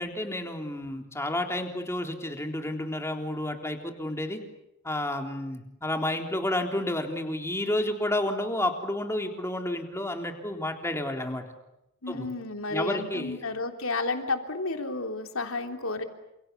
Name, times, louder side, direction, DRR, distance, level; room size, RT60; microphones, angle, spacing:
voice 1, 0.0-4.4 4.8-11.4 12.1-12.3 12.7-13.4, left 1 dB, 15° left, 4 dB, 3.6 m, -30 dB
voice 2, 12.0-16.0, left 3 dB, 70° left, 5 dB, 3.5 m, -31 dB
30.0 x 28.0 x 7.0 m, 0.87 s
head